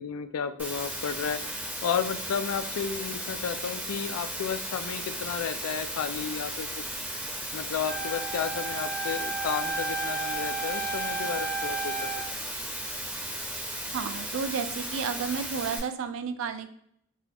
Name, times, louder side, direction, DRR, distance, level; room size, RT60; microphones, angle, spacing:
voice 1, 0.0-6.7 7.1-7.2 7.5-12.2, left 7 dB, 80° left, 10 dB, 0.3 m, -33 dB
Water, 0.6-15.8, right 1 dB, 5° right, 0.6 m, -35 dB
Wind instrument woodwind instrument, 7.9-12.3, right 3 dB, 50° left, 0.7 m, -33 dB
voice 2, 13.9-16.7, right 6 dB, 65° right, 9 dB, 0.3 m, -32 dB
4.0 x 2.3 x 2.8 m, 0.68 s
head